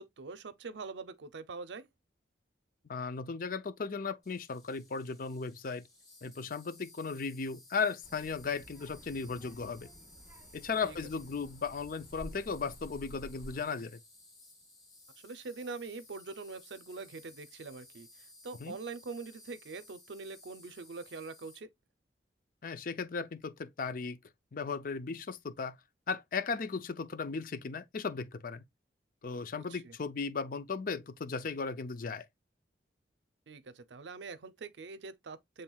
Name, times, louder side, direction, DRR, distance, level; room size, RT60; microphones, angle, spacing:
voice 1, 0.0-1.9 10.8-11.0 15.2-18.1 18.4-21.7 29.5-29.9 33.5-35.6, right 4 dB, 80° right, 0.6 m, -44 dB
voice 2, 2.9-5.9 6.2-9.9 10.5-14.0 18.6-18.8 22.6-24.2 24.5-25.8 26.1-28.6 29.2-32.3, left 5 dB, 50° left, 0.5 m, -36 dB
Insect, 4.2-21.6, left 2 dB, 20° left, 1.5 m, -58 dB
Child speech kid speaking, 8.0-13.6, right 1 dB, 10° right, 0.8 m, -52 dB
7.2 x 3.2 x 2.3 m
head